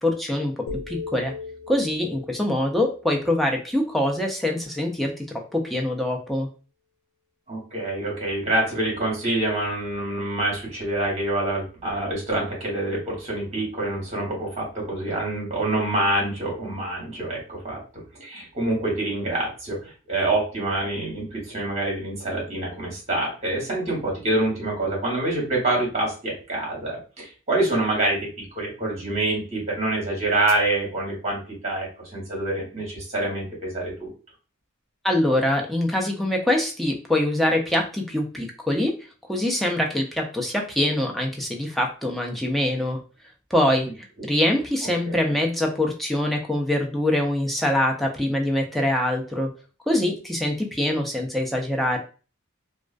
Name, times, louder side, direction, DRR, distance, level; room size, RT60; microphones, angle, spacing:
voice 1, 0.0-0.5 0.9-1.3 1.7-5.3 5.5-6.5 35.0-38.9 39.3-43.0 43.5-43.9 44.2-49.5 49.9-52.0, left 1 dB, ahead, 0 dB, 0.4 m, -24 dB
sound 1, 0.7-4.8, left 4 dB, 80° left, 0.4 m, -39 dB
voice 2, 7.5-17.8 18.1-34.1 44.2-44.3 45.0-45.2, right 2 dB, 30° right, -2 dB, 1.1 m, -26 dB
2.4 x 2.2 x 2.4 m, 0.35 s
head